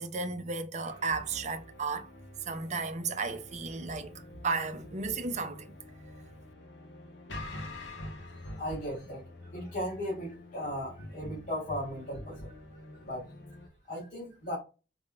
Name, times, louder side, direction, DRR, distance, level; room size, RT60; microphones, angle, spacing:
voice 1, 0.0-2.1 2.5-4.1 4.4-5.7, right 4 dB, 40° right, 0.7 m, -34 dB
sound 1, 0.8-13.7, left 1 dB, 75° left, 1.2 m, -46 dB
voice 2, 8.3-9.2 9.5-12.5 13.0-13.3 13.9-14.6, equal, 50° left, 2.8 m, -37 dB
5.4 x 3.5 x 2.4 m
head